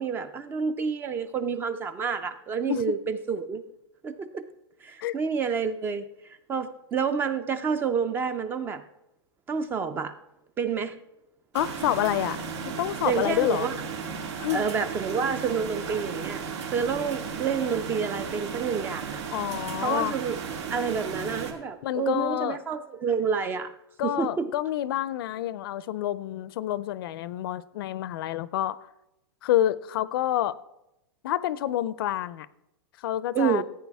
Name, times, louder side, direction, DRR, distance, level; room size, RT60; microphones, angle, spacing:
voice 1, 0.0-3.6 4.0-4.5 4.8-6.1 6.5-8.8 9.5-10.1 10.6-11.0 13.1-13.7 14.5-19.2 19.8-20.4 20.7-23.7 24.0-24.5 33.3-33.6, right 6 dB, 15° right, 0.4 m, -29 dB
voice 2, 11.5-12.4 12.7-13.7 14.4-14.7 19.3-20.2 21.8-22.6 24.0-28.9 29.4-30.6 31.2-32.5 33.0-33.6, left 12 dB, 55° left, 0.5 m, -28 dB
sound 1, 11.5-21.5, right 6 dB, 85° right, 2.2 m, -35 dB
15.0 x 8.9 x 3.4 m
supercardioid pair, 160°, 14 cm